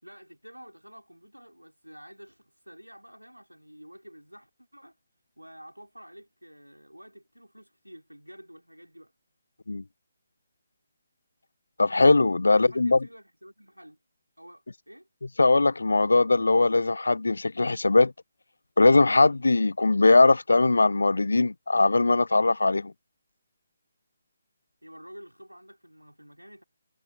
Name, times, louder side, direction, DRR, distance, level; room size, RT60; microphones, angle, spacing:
voice 1, 0.0-5.0 5.4-9.1 12.4-14.0 14.4-15.1 24.8-26.6, equal, 90° right, 4.3 m, -49 dB
voice 2, 11.8-13.0 15.4-18.1 18.8-22.9, left 3 dB, 65° left, 0.5 m, -20 dB
figure-of-eight pair, 145°, 0 cm